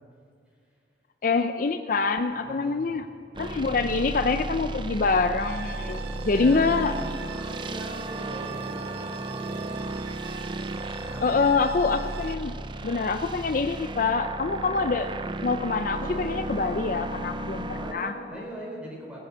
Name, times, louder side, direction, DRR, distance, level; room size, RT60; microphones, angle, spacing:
voice 1, 1.2-3.1 3.4-6.9 11.2-12.5 12.8-15.1 15.4-17.7 17.9-18.1, left 4 dB, 50° left, 9 dB, 0.4 m, -25 dB
voice 2, 2.3-2.9 3.5-3.9 6.3-7.1 7.4-9.9 10.8-11.6 12.1-12.2 17.7-19.2, right 1 dB, 5° right, -3 dB, 3.8 m, -41 dB
sound 1, 3.3-17.9, right 2 dB, 25° right, 0.5 m, -34 dB
sound 2, 5.4-12.3, right 6 dB, 70° right, 0.7 m, -43 dB
20.0 x 7.8 x 7.4 m, 2.4 s
head